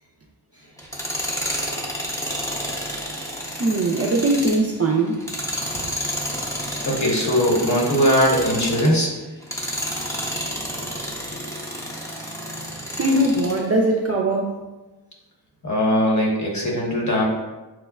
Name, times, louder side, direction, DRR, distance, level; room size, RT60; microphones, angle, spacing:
Tools, 0.8-9.0 9.4-13.6, equal, 5° left, 0.7 m, -30 dB
voice 1, 3.6-5.2 11.8-11.9 13.0-14.6, right 2 dB, 35° right, 1 dB, 0.4 m, -20 dB
voice 2, 6.8-9.2 15.6-17.2, equal, 40° left, -3 dB, 1.1 m, -20 dB
6.1 x 2.1 x 2.3 m, 1.1 s
wide cardioid pair, 65°, 44 cm